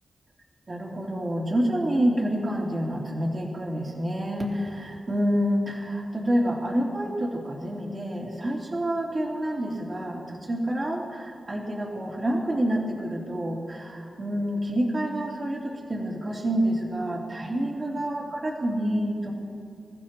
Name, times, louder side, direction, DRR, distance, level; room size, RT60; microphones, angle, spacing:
voice 1, 0.7-19.3, equal, 40° right, -2 dB, 2.7 m, -28 dB
27.0 x 15.0 x 2.9 m, 2.5 s
cardioid pair, 75°, 0 cm